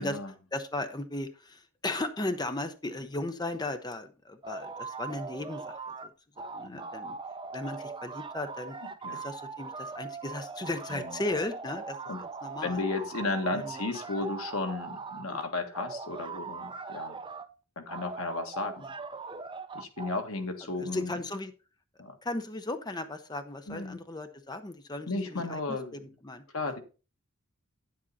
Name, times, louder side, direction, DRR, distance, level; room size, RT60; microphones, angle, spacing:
voice 1, 0.0-0.3 6.6-6.8 9.0-9.2 10.9-11.2 12.1-12.2 12.6-17.2 17.7-18.9 19.7-21.2 22.0-22.2 23.7-24.0 25.1-26.0 26.5-26.8, left 3 dB, 85° left, 5 dB, 1.6 m, -34 dB
voice 2, 0.5-6.1 6.4-7.2 7.5-8.8 9.1-12.8 13.5-13.8 15.3-15.4 20.8-21.5 22.2-26.8, left 2 dB, 20° left, 8 dB, 0.7 m, -36 dB
sound 1, 4.4-6.1 6.4-15.3 15.7-17.5 17.9-20.2, right 4 dB, 25° right, 0.6 m, -40 dB
9.9 x 7.6 x 4.1 m, 0.33 s
head